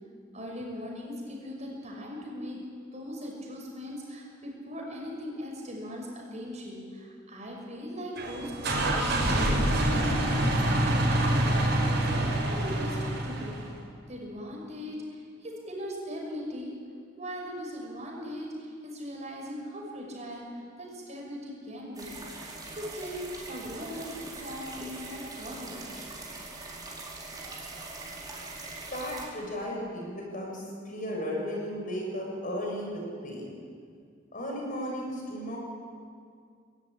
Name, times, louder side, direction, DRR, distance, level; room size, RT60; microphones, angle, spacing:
voice 1, 0.3-2.6 2.9-13.6 14.1-16.7 17.2-22.2 22.7-25.9, equal, 35° right, -1 dB, 5.8 m, -39 dB
sound 1, 8.2-13.7, right 1 dB, 60° right, 5.5 m, -26 dB
sound 2, 22.0-29.3, right 2 dB, 20° right, 4.6 m, -42 dB
voice 2, 28.9-33.5 34.3-35.6, equal, 45° left, -1 dB, 6.5 m, -35 dB
21.0 x 17.0 x 9.8 m, 2.2 s
head